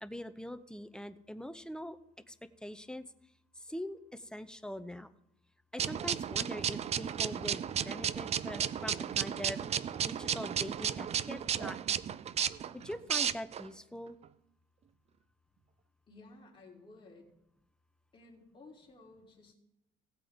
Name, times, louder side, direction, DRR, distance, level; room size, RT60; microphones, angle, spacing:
voice 1, 0.0-2.0 2.3-2.4 2.6-3.0 3.7-5.1 5.7-9.7 10.1-11.8 12.7-14.2, left 1 dB, 5° left, 12 dB, 0.6 m, -43 dB
sound 1, 5.8-13.7, right 8 dB, 40° right, 0.5 m, -34 dB
voice 2, 16.1-17.4 18.1-19.6, left 3 dB, 30° left, -2 dB, 3.2 m, -55 dB
17.0 x 8.3 x 3.6 m, 0.80 s
cardioid pair, 110°, 17 cm